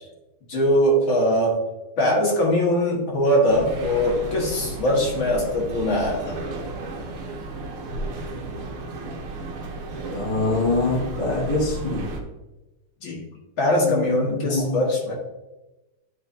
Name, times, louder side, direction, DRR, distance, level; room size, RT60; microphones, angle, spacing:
voice 1, 0.5-1.6 2.0-6.4 13.0-13.2 13.6-15.1, equal, 65° left, -3 dB, 2.3 m, -21 dB
sound 1, 3.5-12.2, right 2 dB, 80° right, 1.9 m, -33 dB
voice 2, 10.1-12.1 13.8-14.8, left 2 dB, 20° left, -4 dB, 1.8 m, -25 dB
11.0 x 4.9 x 2.7 m, 1.0 s
omnidirectional pair, 2.4 m